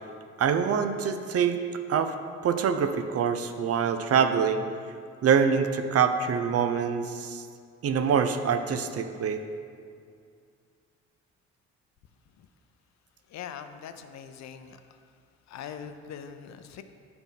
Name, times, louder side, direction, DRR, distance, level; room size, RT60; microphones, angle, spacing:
voice 1, 0.4-1.6 1.9-2.1 2.4-4.6 5.2-7.5 7.8-9.4, right 7 dB, 50° right, 9 dB, 0.6 m, -25 dB
voice 2, 13.3-14.8 15.5-16.8, left 8 dB, 55° left, 9 dB, 0.6 m, -41 dB
8.1 x 5.9 x 3.6 m, 2.3 s
supercardioid pair, 60°, 32 cm